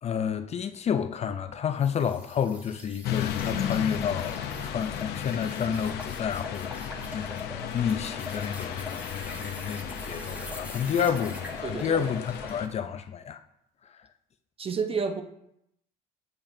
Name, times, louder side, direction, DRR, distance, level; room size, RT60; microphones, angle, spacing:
voice 1, 0.0-13.4 13.8-14.1, left 7 dB, 40° left, 0.5 m, -30 dB
sound 1, 1.8-12.6, left 2 dB, 10° right, 1.3 m, -43 dB
sound 2, 3.0-12.7, left 8 dB, 75° left, 0.7 m, -35 dB
voice 2, 11.6-12.1 14.6-15.2, right 5 dB, 35° right, 0.7 m, -30 dB
7.2 x 6.9 x 2.7 m
cardioid pair, 110°, 17 cm